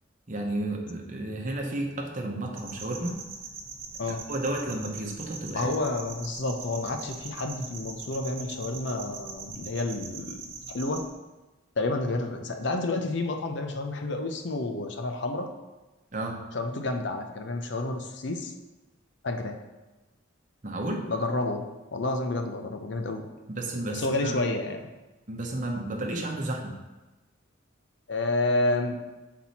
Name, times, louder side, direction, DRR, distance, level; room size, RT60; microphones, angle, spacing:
voice 1, 0.3-3.2 4.1-5.7 16.1-16.4 20.6-21.0 23.5-24.4 25.3-26.8, right 1 dB, 40° right, 1 dB, 0.8 m, -32 dB
sound 1, 2.6-11.1, right 4 dB, 70° right, 0.9 m, -42 dB
voice 2, 5.5-10.4 10.7-11.0 11.8-15.5 16.5-18.5 19.2-19.6 21.1-21.7 21.9-23.3 23.9-24.9 28.1-29.0, left 2 dB, 55° left, 5 dB, 0.6 m, -29 dB
6.1 x 4.2 x 4.1 m, 1.1 s
head